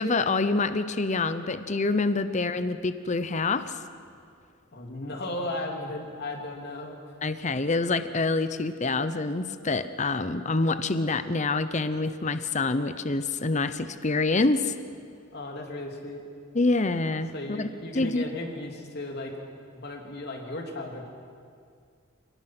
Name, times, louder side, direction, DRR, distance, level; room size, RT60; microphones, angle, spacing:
voice 1, 0.0-3.8 7.2-14.7 16.5-18.2, left 3 dB, 35° left, 12 dB, 0.8 m, -26 dB
voice 2, 4.7-7.0 15.3-16.2 17.3-19.4 19.7-21.1, left 1 dB, 55° left, 1 dB, 3.2 m, -35 dB
28.5 x 19.0 x 6.1 m, 2.3 s
head